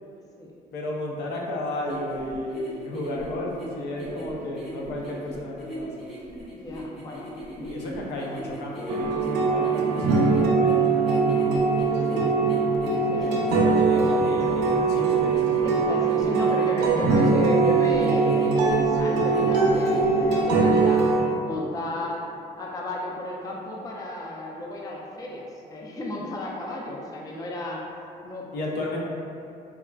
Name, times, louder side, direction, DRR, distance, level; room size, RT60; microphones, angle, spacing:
voice 1, 0.7-6.1 7.7-12.1 13.2-15.7 28.5-29.0, left 1 dB, 75° left, -2 dB, 0.5 m, -33 dB
sound 1, 1.9-20.4, right 1 dB, ahead, 0.8 m, -40 dB
voice 2, 6.5-7.9 11.9-12.3 13.1-13.4 15.6-21.1 21.4-22.3 22.6-27.9 28.2-28.5, left 1 dB, 20° left, -2 dB, 0.4 m, -33 dB
sound 2, 8.9-21.2, right 4 dB, 90° right, 0.4 m, -21 dB
3.4 x 2.3 x 2.2 m, 2.5 s
cardioid pair, 110°, 17 cm